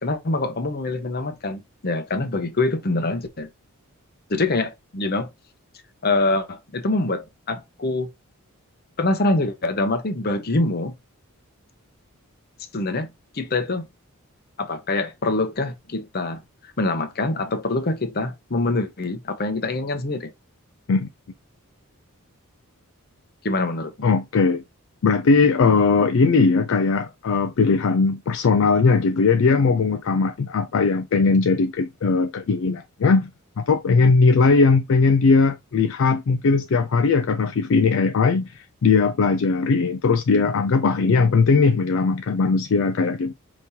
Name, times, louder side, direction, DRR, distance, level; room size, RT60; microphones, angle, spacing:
voice 1, 0.0-3.5 4.3-5.3 6.0-8.1 9.0-10.9 12.7-13.9 14.6-20.3 23.4-23.9, left 2 dB, 45° left, 0.8 m, -25 dB
voice 2, 24.0-24.6 25.0-33.3 33.6-43.3, left 4 dB, 60° left, 0.4 m, -19 dB
5.1 x 3.0 x 2.7 m
head